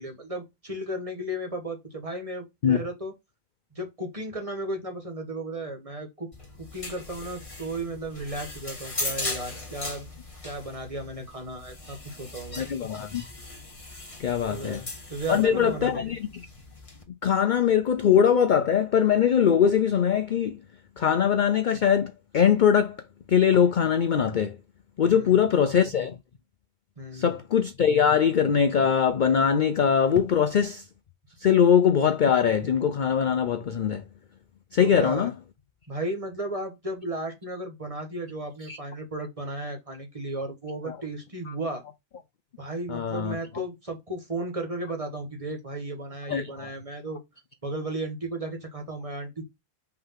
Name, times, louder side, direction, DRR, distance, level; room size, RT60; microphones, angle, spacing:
voice 1, 0.0-3.1 3.7-6.3 6.6-10.1 10.4-12.6 14.5-16.1 25.0-25.5 27.0-27.4 34.8-35.3 35.9-41.8 42.6-47.2 47.6-49.5, right 1 dB, 25° right, 1.6 m, -34 dB
sound 1, 6.3-17.0, left 2 dB, 25° left, 1.7 m, -39 dB
voice 2, 12.6-13.2 14.2-14.8 15.3-16.2 17.2-20.6 21.0-23.0 23.3-24.6 25.0-26.2 27.1-30.8 31.4-34.0 34.7-35.3 38.7-38.8 40.9-41.0 42.9-43.3 46.3-46.5, left 8 dB, 55° left, 0.5 m, -22 dB
5.8 x 3.3 x 5.6 m
omnidirectional pair, 1.4 m